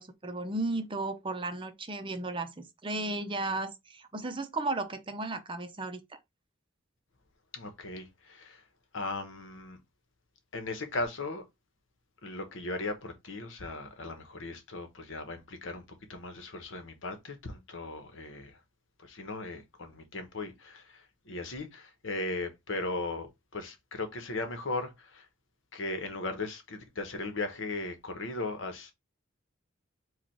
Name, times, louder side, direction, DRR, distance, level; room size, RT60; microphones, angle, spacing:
voice 1, 0.0-6.2, right 2 dB, 25° right, 0.7 m, -35 dB
voice 2, 7.5-8.6 8.9-9.8 10.5-11.4 12.2-18.6 19.0-25.3 25.7-28.9, left 2 dB, 70° left, 1.1 m, -37 dB
4.9 x 2.4 x 4.3 m
head